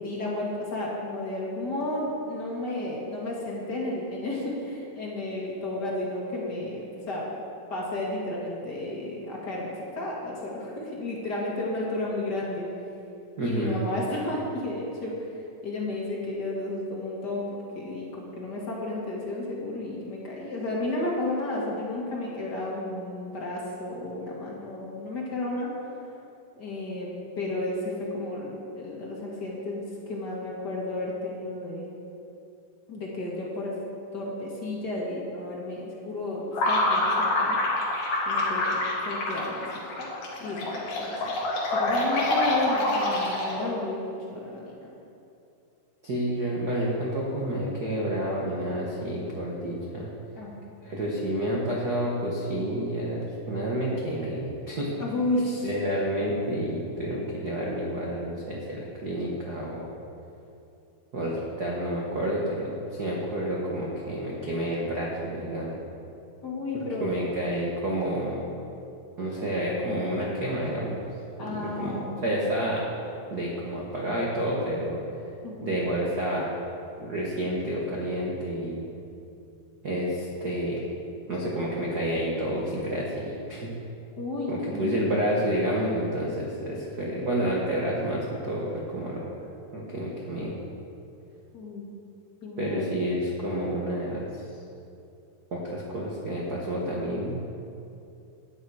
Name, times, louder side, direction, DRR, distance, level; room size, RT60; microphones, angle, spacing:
voice 1, 0.0-7.3 7.7-12.7 13.4-17.4 17.7-26.0 26.6-27.1 27.4-31.9 32.9-33.7 34.1-37.6 38.3-38.6 39.0-39.7 40.0-40.1 40.4-41.3 41.7-44.9 50.3-50.5 55.0-55.7 66.4-67.3 71.4-72.3 75.4-75.7 84.2-85.1 91.5-91.9 92.4-92.8, left 2 dB, 35° left, -4 dB, 1.9 m, -32 dB
voice 2, 13.4-13.8 46.0-50.1 50.8-54.9 55.6-59.9 61.1-65.8 67.0-68.5 69.2-71.0 71.5-72.9 73.3-75.0 75.6-76.5 77.0-78.9 79.8-80.9 81.3-83.7 84.5-89.3 89.7-90.5 92.6-94.4 95.5-97.4, right 1 dB, 85° right, -3 dB, 0.8 m, -29 dB
sound 1, 36.5-43.8, left 2 dB, 70° left, 3.5 m, -26 dB
12.5 x 9.7 x 4.9 m, 2.6 s
omnidirectional pair, 4.1 m